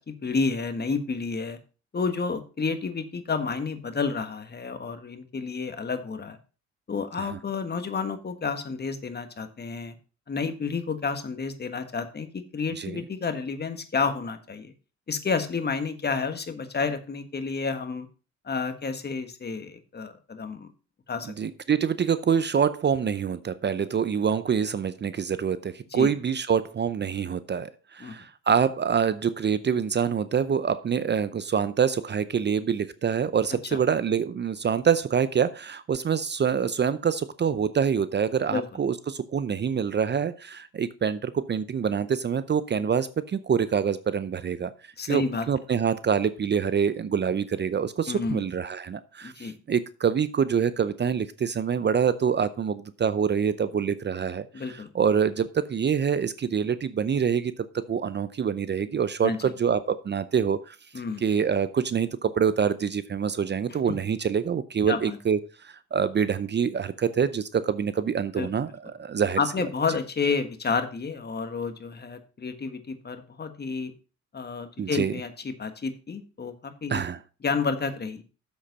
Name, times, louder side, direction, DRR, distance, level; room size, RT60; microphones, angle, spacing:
voice 1, 0.0-1.6 1.9-6.4 6.9-9.9 10.3-14.7 15.1-18.1 18.4-20.7 21.1-21.3 25.9-26.1 28.0-28.1 33.7-33.8 38.5-38.6 45.0-45.5 48.1-48.4 49.2-49.5 54.5-54.9 59.2-59.4 60.9-61.2 64.9-65.2 68.3-68.5 69.4-73.9 74.3-77.0 77.4-78.2, left 4 dB, 35° left, 9 dB, 1.5 m, -30 dB
voice 2, 21.4-44.7 45.1-60.8 61.2-69.4 74.8-75.1 76.9-77.2, right 7 dB, 35° right, 15 dB, 0.6 m, -26 dB
7.5 x 7.1 x 5.4 m, 0.34 s
cardioid pair, 90°, 30 cm